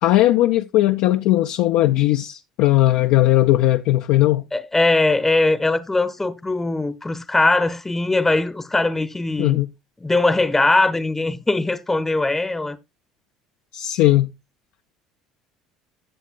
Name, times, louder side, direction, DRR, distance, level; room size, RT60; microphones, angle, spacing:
voice 1, 0.0-4.4 9.4-9.7 13.7-14.3, left 15 dB, 65° left, 0.4 m, -18 dB
voice 2, 4.5-9.6 10.0-12.8, left 2 dB, 15° left, 0.7 m, -20 dB
12.0 x 7.3 x 2.4 m
hypercardioid pair, 65°, 2 cm